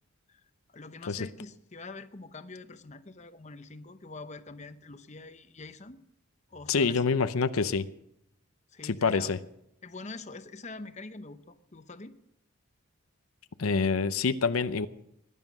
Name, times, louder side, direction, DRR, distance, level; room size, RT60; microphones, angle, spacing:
voice 1, 0.7-6.0 6.5-7.2 8.7-9.4 9.8-12.1, left 3 dB, 35° left, 10 dB, 0.9 m, -45 dB
voice 2, 6.7-7.9 8.8-9.4 13.6-14.9, left 4 dB, 85° left, 12 dB, 0.7 m, -26 dB
20.0 x 11.0 x 6.2 m, 0.78 s
head